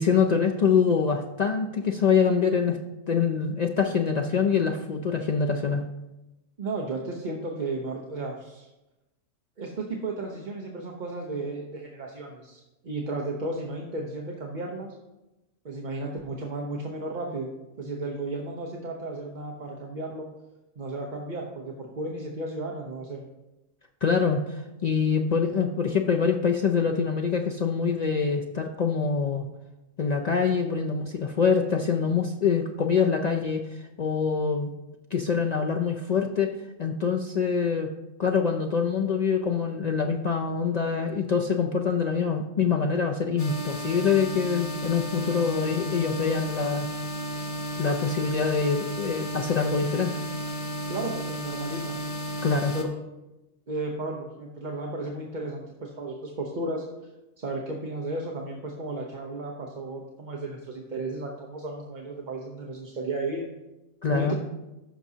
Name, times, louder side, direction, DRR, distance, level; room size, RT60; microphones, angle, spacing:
voice 1, 0.0-2.8 3.1-5.8 24.0-29.4 30.0-33.6 34.0-34.7 35.1-36.5 36.8-37.9 38.2-46.9 47.8-50.1 52.4-52.8 64.0-64.3, left 6 dB, 70° left, 2 dB, 0.4 m, -25 dB
voice 2, 6.6-8.7 9.6-14.9 15.6-17.5 17.8-20.3 20.8-23.2 50.9-52.0 52.7-52.9 53.7-56.8 57.4-63.5 64.1-64.3, right 2 dB, 40° right, 0 dB, 0.8 m, -34 dB
sound 1, 43.4-52.8, equal, 30° left, 1.0 m, -33 dB
15.0 x 6.0 x 2.8 m, 0.99 s
omnidirectional pair, 1.4 m